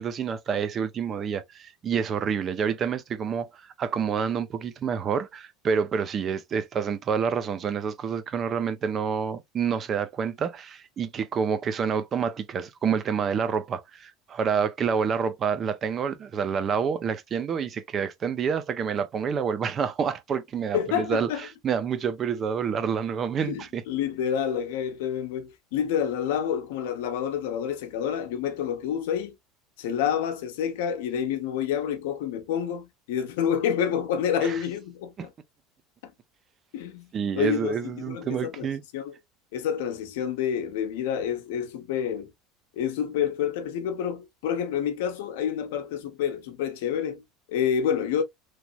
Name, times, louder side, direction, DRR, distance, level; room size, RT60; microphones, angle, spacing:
voice 1, 0.0-23.8 34.4-34.6 35.2-35.3 37.1-38.8, right 6 dB, 35° right, 0.7 m, -28 dB
voice 2, 20.7-21.5 23.4-29.3 29.8-35.3 36.0-36.1 36.7-37.1 37.3-38.7 38.9-39.1 39.5-42.3 42.8-48.2, left 8 dB, 80° left, 0.9 m, -28 dB
3.2 x 2.9 x 2.4 m
supercardioid pair, 105°, 0 cm